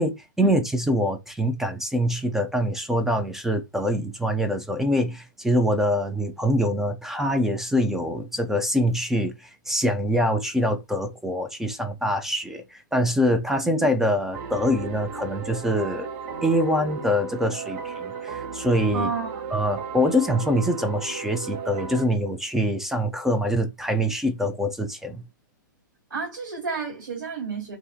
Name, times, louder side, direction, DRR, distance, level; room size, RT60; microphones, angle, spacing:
voice 1, 0.0-16.1 16.4-19.1 19.5-25.2, equal, 5° right, 0.3 m, -24 dB
sound 1, 14.3-22.1, right 5 dB, 40° right, 1.0 m, -35 dB
voice 2, 18.9-19.5 26.1-27.8, right 5 dB, 85° right, 1.5 m, -30 dB
2.5 x 2.4 x 2.4 m
hypercardioid pair, 130°, 11 cm